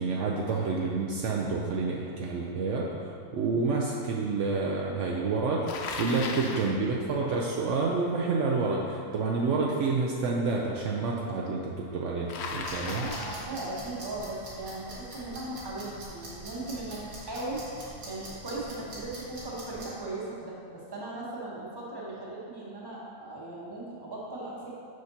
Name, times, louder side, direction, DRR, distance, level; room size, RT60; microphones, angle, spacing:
voice 1, 0.0-5.7 6.0-13.1, right 4 dB, 70° right, -2 dB, 0.8 m, -29 dB
Bicycle, 5.7-6.8 12.3-13.6, left 4 dB, 65° left, 0.7 m, -36 dB
sound 1, 12.4-19.8, right 1 dB, 85° right, 1.8 m, -44 dB
voice 2, 12.9-24.8, right 2 dB, 20° right, -5 dB, 0.9 m, -38 dB
6.4 x 5.8 x 2.7 m, 2.4 s
omnidirectional pair, 1.4 m